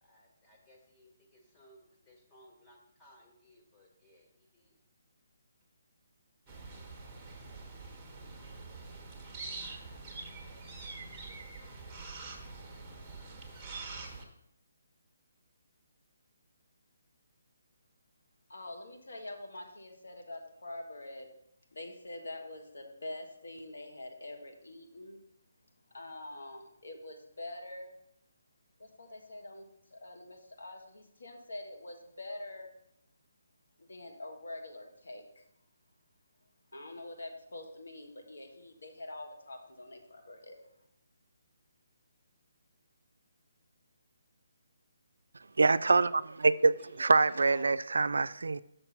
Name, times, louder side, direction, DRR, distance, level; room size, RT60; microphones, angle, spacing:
voice 1, 0.0-4.7 7.4-7.6 46.8-47.7, left 1 dB, 10° left, 1.3 m, -59 dB
sound 1, 6.5-14.2, right 3 dB, 10° right, 1.1 m, -45 dB
voice 2, 18.5-21.3 21.7-25.2 25.9-27.9 28.8-32.7 33.8-35.4 36.7-40.6, left 2 dB, 85° left, 1.5 m, -45 dB
voice 3, 45.6-48.6, right 3 dB, 80° right, 0.3 m, -25 dB
6.5 x 4.4 x 5.7 m
hypercardioid pair, 160°, 0 cm